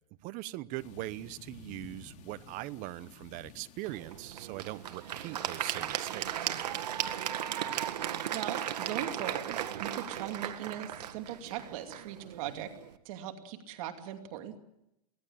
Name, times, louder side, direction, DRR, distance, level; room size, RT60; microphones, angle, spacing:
voice 1, 0.2-6.5, right 17 dB, 40° right, 0.9 m, -41 dB
sound 1, 0.8-7.2, left 7 dB, 35° left, 2.5 m, -55 dB
Applause / Crowd, 3.8-12.9, right 10 dB, 85° right, 1.8 m, -36 dB
voice 2, 8.3-12.7 13.0-14.6, right 10 dB, 60° right, 2.6 m, -39 dB
23.0 x 17.5 x 8.7 m
supercardioid pair, 140°, 20 cm